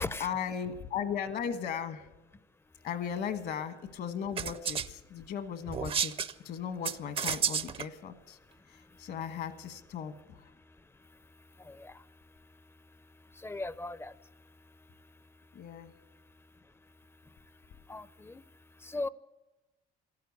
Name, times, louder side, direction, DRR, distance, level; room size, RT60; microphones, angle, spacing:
voice 1, 0.2-2.1 2.8-8.4 8.7-10.5 15.5-16.0, left 7 dB, 65° left, 12 dB, 1.4 m, -37 dB
sound 1, 4.4-4.9 5.7-6.3 6.8-7.8, right 7 dB, 35° right, 0.5 m, -31 dB
voice 2, 13.4-14.1 17.9-18.4 18.9-19.1, left 2 dB, 15° left, 18 dB, 0.5 m, -37 dB
13.0 x 11.5 x 9.5 m, 1.1 s
cardioid pair, 110°, 17 cm